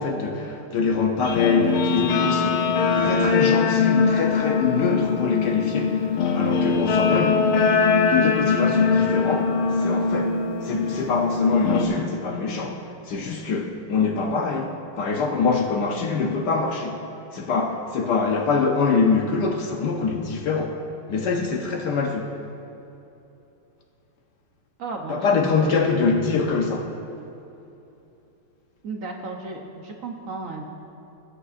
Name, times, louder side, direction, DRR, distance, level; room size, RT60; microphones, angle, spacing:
voice 1, 0.0-7.4 8.1-17.0 17.3-20.8 21.1-22.3 25.1-26.9, left 4 dB, 65° left, 1.2 m, -24 dB
Guitar, 1.2-11.9, left 5 dB, 85° left, 1.7 m, -22 dB
voice 2, 24.8-26.1 28.8-30.6, right 3 dB, 65° right, 0.8 m, -35 dB
19.5 x 8.6 x 2.5 m
omnidirectional pair, 2.3 m